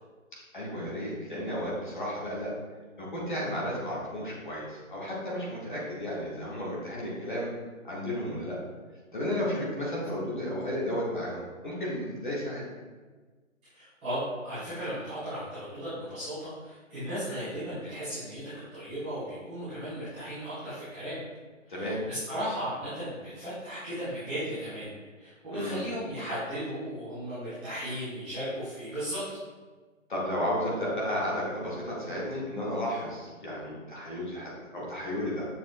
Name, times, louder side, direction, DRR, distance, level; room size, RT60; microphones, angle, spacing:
voice 1, 0.5-2.5 3.0-7.5 7.8-8.6 9.1-12.7 21.7-22.0 25.5-25.9 30.1-35.5, equal, 35° left, -6 dB, 1.0 m, -33 dB
voice 2, 13.7-18.4 18.7-21.2 21.7-24.9 25.2-29.2, equal, 5° right, -21 dB, 1.0 m, -36 dB
6.7 x 2.3 x 2.4 m, 1.4 s
hypercardioid pair, 165°, 40 cm